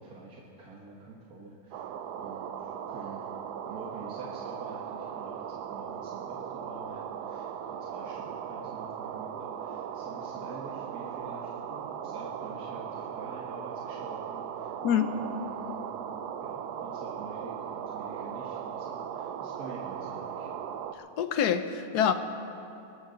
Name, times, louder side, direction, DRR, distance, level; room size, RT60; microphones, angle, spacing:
voice 1, 0.0-1.9 2.2-3.3 3.7-14.7 15.0-15.9 16.4-20.5, right 3 dB, 65° right, -3 dB, 1.9 m, -46 dB
sound 1, 1.7-20.9, right 8 dB, 80° right, 1.2 m, -38 dB
voice 2, 20.9-22.1, left 9 dB, 80° left, 10 dB, 1.3 m, -26 dB
25.0 x 13.0 x 4.0 m, 2.8 s
omnidirectional pair, 1.7 m